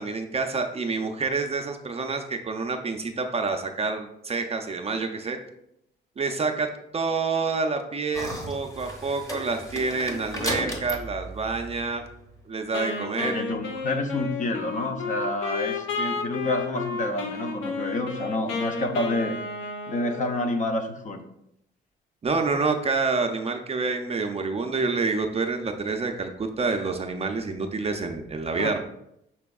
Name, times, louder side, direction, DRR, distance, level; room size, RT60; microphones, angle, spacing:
voice 1, 0.0-5.4 6.2-12.0 12.5-13.3 22.2-28.8, right 4 dB, 30° right, 5 dB, 0.5 m, -28 dB
sound 1, 8.1-12.4, equal, 15° left, 1.0 m, -35 dB
Wind instrument woodwind instrument, 12.7-20.7, left 4 dB, 85° left, 0.7 m, -32 dB
voice 2, 13.2-19.3 19.9-21.2 28.6-28.8, left 2 dB, 40° left, 5 dB, 0.7 m, -28 dB
5.9 x 3.3 x 2.3 m, 0.79 s
cardioid pair, 90°, 20 cm